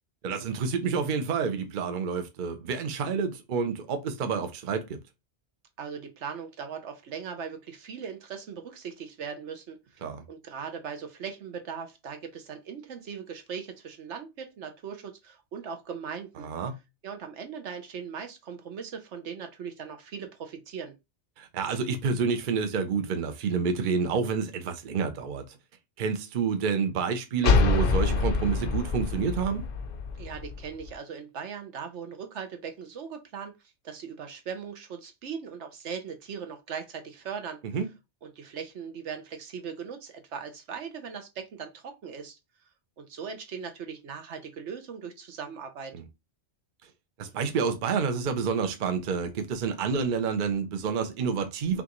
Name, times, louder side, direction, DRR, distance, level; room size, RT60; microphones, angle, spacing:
voice 1, 0.2-5.0 10.0-10.2 16.4-16.8 21.4-25.6 26.0-29.6 37.7-37.9 45.9-46.0 47.2-51.8, right 5 dB, 50° right, 0.8 m, -29 dB
voice 2, 5.8-10.0 10.3-16.5 17.0-20.9 30.2-33.5 33.8-37.6 38.2-42.4 43.0-45.9, right 6 dB, 75° right, 1.1 m, -39 dB
sound 1, 27.4-30.9, left 4 dB, 55° left, 0.7 m, -26 dB
5.6 x 2.5 x 3.0 m
omnidirectional pair, 1.2 m